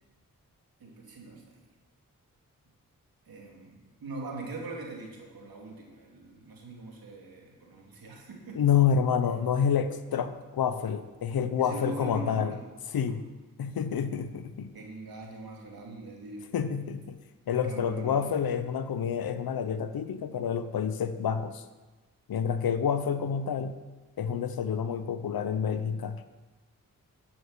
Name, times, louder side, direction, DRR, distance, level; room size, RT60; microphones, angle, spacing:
voice 1, 0.8-1.6 3.3-8.6 11.6-12.6 14.7-16.5 17.7-18.2, right 3 dB, 85° right, -1 dB, 2.6 m, -42 dB
voice 2, 8.5-12.5 12.9-13.2 13.6-14.7 16.5-17.2 17.5-21.6 22.3-23.8 24.2-26.2, left 7 dB, 85° left, 11 dB, 0.7 m, -28 dB
11.0 x 7.2 x 6.6 m, 1.2 s
cardioid pair, 50°, 35 cm